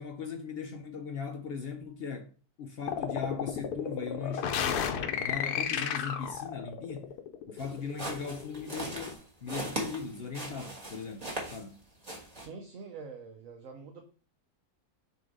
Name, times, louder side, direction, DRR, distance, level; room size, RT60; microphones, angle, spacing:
voice 1, 0.0-2.3 2.6-7.1 7.5-11.8, left 5 dB, 65° left, 0.6 m, -39 dB
sound 1, 2.9-9.1, left 8 dB, 85° left, 1.2 m, -33 dB
sound 2, 7.6-11.8 12.0-12.5, right 2 dB, 25° right, 1.5 m, -39 dB
voice 2, 12.4-14.0, right 4 dB, 60° right, 1.1 m, -45 dB
6.5 x 2.9 x 5.1 m
omnidirectional pair, 1.6 m